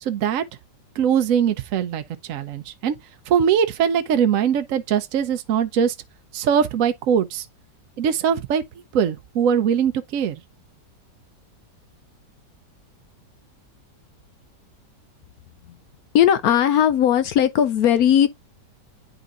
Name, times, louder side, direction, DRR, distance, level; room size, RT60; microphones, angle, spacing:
voice 1, 0.0-0.4 1.0-2.0 2.3-2.9 3.3-5.9 6.3-7.5 8.0-8.6 8.9-10.4, right 8 dB, 65° right, 0.9 m, -21 dB
voice 2, 16.1-18.3, left 10 dB, 70° left, 0.9 m, -17 dB
10.0 x 3.9 x 2.4 m
omnidirectional pair, 1.9 m